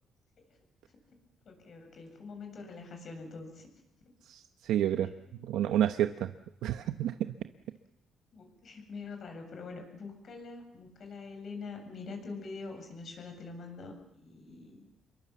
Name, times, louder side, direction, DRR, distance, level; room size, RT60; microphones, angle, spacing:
voice 1, 1.4-3.7 5.0-5.7 7.0-7.1 8.3-14.8, left 4 dB, 45° left, 5 dB, 7.4 m, -45 dB
voice 2, 4.3-5.1 5.4-6.3 6.6-7.1, right 11 dB, 90° right, 8 dB, 1.0 m, -29 dB
28.0 x 23.0 x 7.3 m, 0.79 s
cardioid pair, 155°, 0 cm